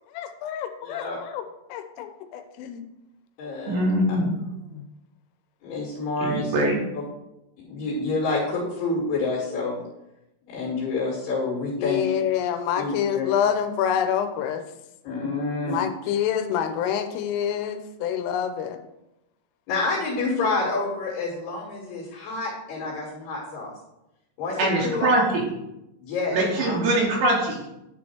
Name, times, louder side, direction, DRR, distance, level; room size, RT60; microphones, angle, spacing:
voice 1, 0.1-1.4 1.7-2.8 4.7-4.9 11.8-14.6 15.7-18.8, left 9 dB, 90° left, 8 dB, 3.3 m, -27 dB
voice 2, 0.8-1.2 3.4-3.8 5.6-6.6 7.6-9.8 10.5-12.1 12.8-13.3 15.0-15.8 19.7-23.7 24.4-25.3 26.0-26.8, left 3 dB, 65° left, -4 dB, 3.5 m, -28 dB
voice 3, 3.7-4.4 6.2-6.8 24.6-25.5 26.3-27.6, right 1 dB, 70° right, -1 dB, 3.3 m, -22 dB
10.0 x 4.4 x 4.4 m, 0.89 s
omnidirectional pair, 5.7 m